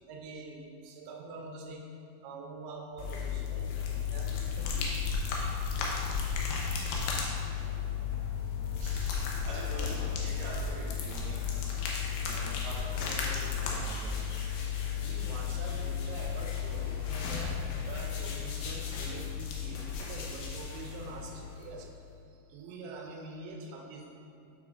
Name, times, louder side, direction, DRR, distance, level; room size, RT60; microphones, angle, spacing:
voice 1, 0.1-1.9 2.2-3.7 4.1-5.0 15.0-24.1, right 3 dB, 90° right, 1 dB, 2.7 m, -45 dB
sound 1, 3.0-21.9, left 6 dB, 80° left, 2.4 m, -34 dB
voice 2, 7.1-7.7 8.7-11.6 12.2-14.3, right 1 dB, 70° right, -7 dB, 2.8 m, -45 dB
9.1 x 4.9 x 2.4 m, 2.7 s
omnidirectional pair, 4.5 m